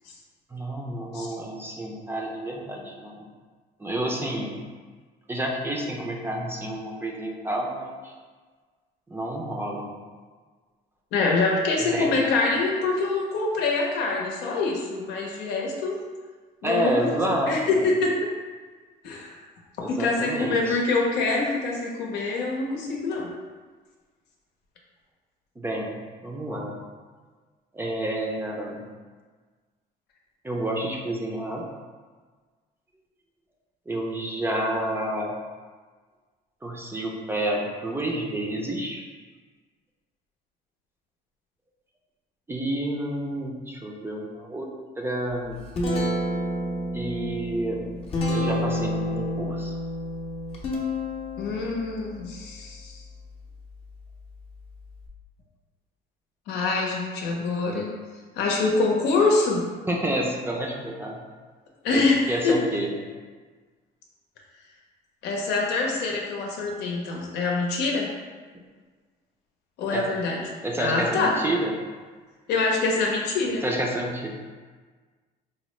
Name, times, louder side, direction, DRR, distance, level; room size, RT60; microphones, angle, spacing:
voice 1, 0.5-3.3 3.8-4.6 5.3-8.1 9.1-9.9 11.8-12.2 16.6-17.5 17.8-17.9 19.8-20.8 25.6-26.8 27.7-28.8 30.4-31.6 33.9-35.3 36.6-39.0 42.5-44.7 45.0-45.6 46.9-47.8 48.3-49.7 51.5-51.6 59.9-61.2 61.9-63.0 69.9-70.1 70.6-71.7 73.6-74.4, right 1 dB, 15° right, -1 dB, 0.5 m, -29 dB
voice 2, 11.1-16.0 16.6-18.3 19.0-19.4 19.9-23.3 51.4-53.0 56.5-57.9 58.4-59.7 61.8-62.6 65.2-68.1 69.8-70.4 70.8-71.4 72.5-73.6, left 3 dB, 85° left, -1 dB, 0.7 m, -25 dB
Guitar, 45.3-55.1, left 1 dB, 35° left, 0.6 m, -31 dB
4.1 x 2.0 x 3.1 m, 1.5 s
cardioid pair, 110°, 17 cm